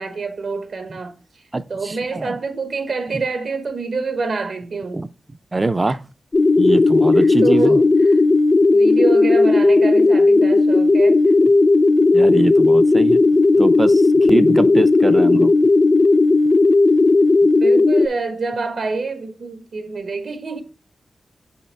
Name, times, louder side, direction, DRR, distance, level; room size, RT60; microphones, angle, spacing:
voice 1, 0.0-1.4 1.7-5.0 5.9-6.0 7.2-8.1 8.7-11.5 17.6-20.6, right 4 dB, 70° right, 0.9 m, -27 dB
voice 2, 1.5-2.4 4.9-5.1 5.5-6.0 6.6-7.8 12.1-13.2 13.6-15.5, right 2 dB, 25° right, 0.4 m, -22 dB
sound 1, 6.3-18.1, left 3 dB, 40° left, 0.5 m, -14 dB
6.0 x 5.5 x 3.3 m
wide cardioid pair, 95°, 0 cm